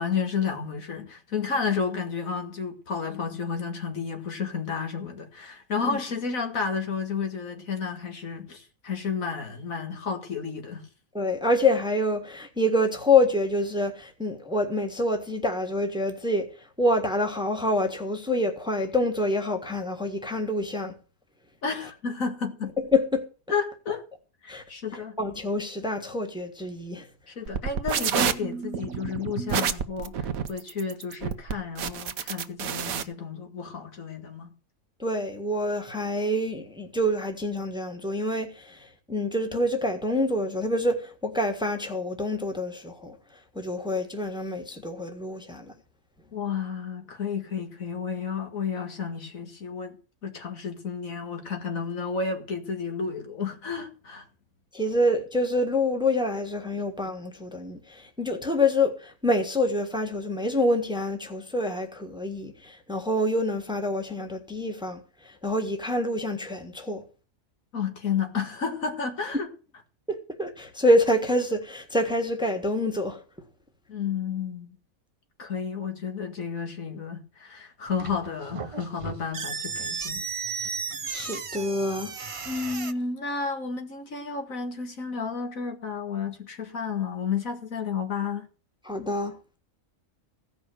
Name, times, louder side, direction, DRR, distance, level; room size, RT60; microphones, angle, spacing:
voice 1, 0.0-10.9 21.6-22.7 23.5-24.1 24.4-25.2 27.3-34.5 46.3-50.0 50.2-54.2 67.7-69.5 73.9-74.7 75.4-80.2 82.5-88.5, left 5 dB, 70° left, 2.2 m, -31 dB
voice 2, 11.1-20.9 22.8-23.2 24.5-24.6 25.2-27.1 35.0-43.2 43.5-45.7 54.7-67.0 70.1-73.2 81.1-82.1 88.8-89.4, left 1 dB, 5° right, 1.5 m, -26 dB
sound 1, 27.5-33.0, right 7 dB, 80° right, 1.3 m, -28 dB
sound 2, 77.9-82.9, right 5 dB, 40° right, 0.4 m, -34 dB
15.5 x 5.6 x 7.7 m
omnidirectional pair, 1.5 m